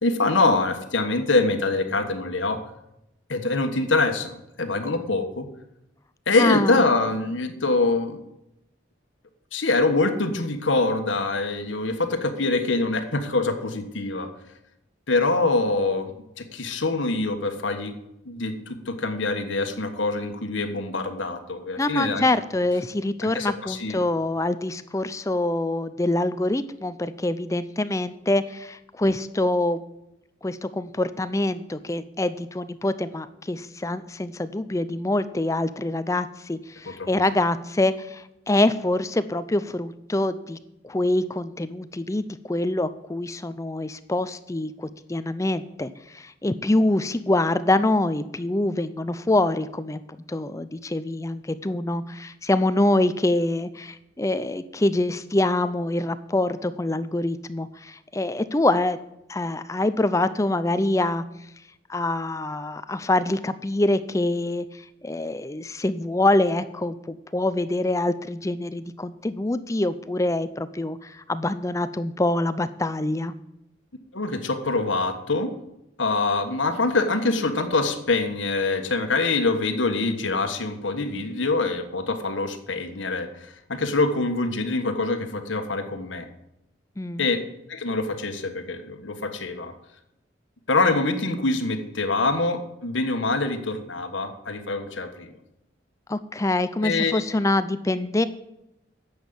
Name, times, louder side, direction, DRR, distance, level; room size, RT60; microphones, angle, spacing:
voice 1, 0.0-2.6 3.3-5.5 6.3-8.2 9.5-14.3 15.1-17.9 18.2-22.3 23.2-24.0 37.0-37.1 74.1-75.5 76.0-86.3 87.2-87.4 87.7-89.7 90.7-95.3 96.8-97.2, left 3 dB, 85° left, 7 dB, 1.4 m, -24 dB
voice 2, 6.4-6.8 21.8-29.8 30.4-40.6 40.8-50.0 50.3-59.0 59.3-61.2 61.9-73.3 87.0-87.3 96.1-98.2, left 2 dB, 15° left, 13 dB, 0.4 m, -25 dB
10.5 x 7.3 x 7.9 m, 0.86 s
head